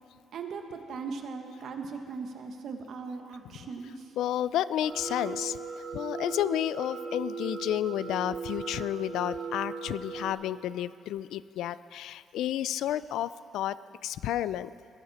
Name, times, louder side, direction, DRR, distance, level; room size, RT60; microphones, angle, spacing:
voice 1, 0.3-4.1, right 4 dB, 60° right, 5 dB, 1.3 m, -39 dB
voice 2, 4.2-5.6 5.9-13.8 14.0-14.7, left 12 dB, 85° left, 17 dB, 0.3 m, -31 dB
sound 1, 4.8-10.3, right 5 dB, 40° right, 3.6 m, -38 dB
20.5 x 12.0 x 4.2 m, 2.4 s
cardioid pair, 120°, 0 cm